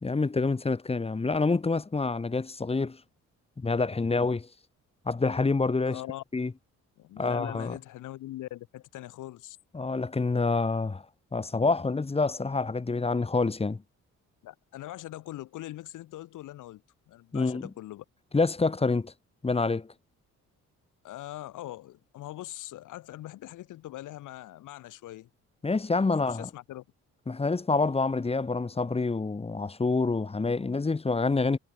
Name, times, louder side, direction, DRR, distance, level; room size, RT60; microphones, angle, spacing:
voice 1, 0.0-3.0 3.6-4.5 5.1-6.0 6.3-6.5 7.2-7.8 9.7-11.0 11.3-13.8 17.3-17.6 18.3-19.1 19.4-19.9 25.6-26.5 27.3-31.6, left 3 dB, 20° left, 1.3 m, -27 dB
voice 2, 5.8-6.2 7.0-9.6 14.4-18.0 21.0-25.3 26.2-26.8, left 15 dB, 85° left, 7.4 m, -42 dB
cardioid pair, 90°, 30 cm